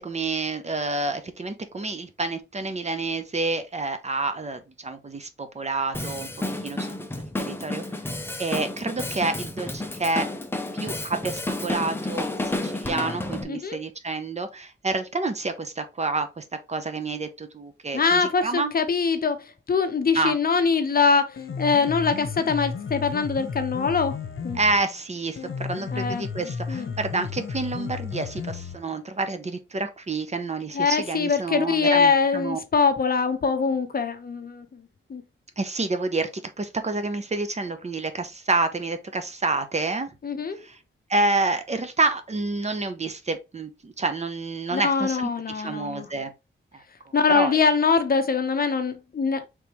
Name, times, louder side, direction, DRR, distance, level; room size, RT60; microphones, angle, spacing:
voice 1, 0.0-6.3 6.6-6.9 7.4-7.8 8.4-10.3 10.8-12.3 12.6-18.7 20.1-20.3 24.5-32.6 35.6-40.1 40.6-40.8 41.1-46.3 46.7-47.6, right 3 dB, 35° right, 0.7 m, -28 dB
Drum kit, 5.9-13.4, left 2 dB, 10° left, 0.6 m, -31 dB
voice 2, 13.4-13.8 17.9-24.2 24.4-24.6 25.9-26.2 26.7-26.9 30.7-34.8 35.1-35.2 40.2-40.6 44.7-46.1 47.1-49.5, left 5 dB, 45° left, 0.7 m, -23 dB
Piano, 21.2-29.2, left 6 dB, 75° left, 0.9 m, -34 dB
5.1 x 3.4 x 3.0 m
wide cardioid pair, 125°, 21 cm